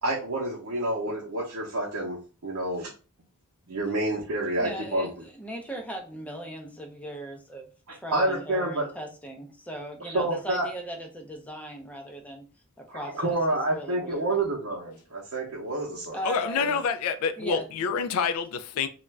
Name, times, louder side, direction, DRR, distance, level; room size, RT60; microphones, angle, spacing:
voice 1, 0.0-2.9 3.7-5.1 8.1-8.9 10.0-10.7 12.9-16.2, right 1 dB, 70° right, 0.7 m, -28 dB
voice 2, 4.5-12.4 12.8-13.4 13.7-14.4 16.1-16.6 17.4-17.7, right 1 dB, 5° left, 0.4 m, -38 dB
voice 3, 16.2-18.9, left 5 dB, 85° left, 0.3 m, -27 dB
2.4 x 2.2 x 3.1 m
head